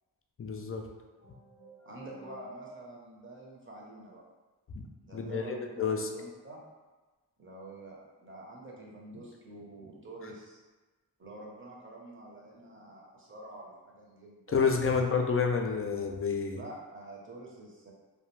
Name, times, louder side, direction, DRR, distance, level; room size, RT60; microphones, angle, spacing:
voice 1, 0.4-0.9 4.7-4.8 5.1-6.1 14.5-16.6, left 5 dB, 35° left, 3 dB, 0.4 m, -29 dB
sound 1, 1.2-3.3, right 1 dB, 80° right, 1.0 m, -50 dB
voice 2, 1.8-4.2 5.0-6.6 7.4-10.6 11.2-14.9 16.5-17.9, right 2 dB, 30° right, -3 dB, 0.8 m, -47 dB
2.3 x 2.2 x 3.1 m, 1.2 s
cardioid pair, 40°, 42 cm